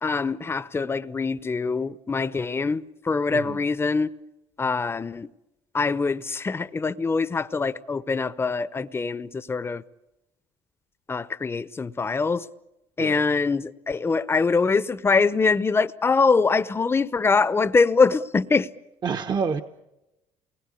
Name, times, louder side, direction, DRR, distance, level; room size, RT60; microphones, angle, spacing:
voice 1, 0.0-4.1 4.6-5.3 5.7-9.8 11.1-12.5 13.0-18.7, left 4 dB, 20° left, 0.8 m, -23 dB
voice 2, 19.0-19.6, right 5 dB, 40° right, 1.1 m, -27 dB
28.5 x 20.0 x 8.5 m
supercardioid pair, 85°, 11 cm